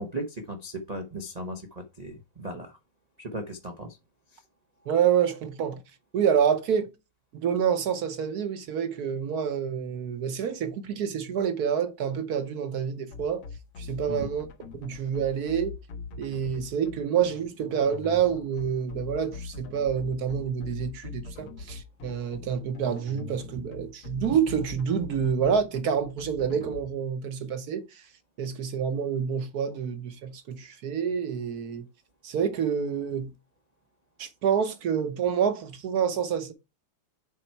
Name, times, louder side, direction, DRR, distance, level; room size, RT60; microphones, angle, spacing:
voice 1, 0.0-2.8 3.2-4.0 4.3-4.4 14.1-14.3, right 1 dB, 85° right, 0.3 m, -37 dB
voice 2, 4.9-5.8 6.1-6.9 7.4-13.4 13.8-14.5 14.8-15.7 16.2-28.0 28.4-31.8 32.2-33.3 34.2-36.5, right 7 dB, 55° right, 1.1 m, -27 dB
sound 1, 13.1-26.8, left 4 dB, 85° left, 2.0 m, -41 dB
7.1 x 4.3 x 4.5 m
omnidirectional pair, 2.4 m